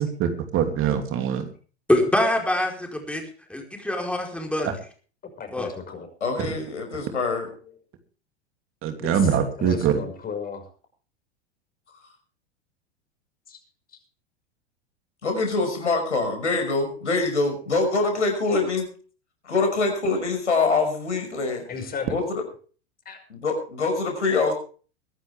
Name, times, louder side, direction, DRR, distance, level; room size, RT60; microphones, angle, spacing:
voice 1, 0.0-1.5 8.8-9.9, right 8 dB, 35° right, 6 dB, 2.8 m, -23 dB
voice 2, 1.9-3.2 3.5-4.7 5.5-5.7, left 1 dB, 5° left, 1 dB, 4.8 m, -24 dB
voice 3, 5.2-6.1 7.7-7.8 9.0-10.7 13.5-13.6 21.7-22.2 23.1-23.2, left 5 dB, 25° left, 6 dB, 5.7 m, -35 dB
voice 4, 6.2-7.5 15.2-18.9 19.4-21.6 22.1-22.4 23.3-24.5, left 3 dB, 85° left, 5 dB, 5.9 m, -24 dB
22.5 x 11.5 x 3.5 m, 0.40 s
hypercardioid pair, 95°, 34 cm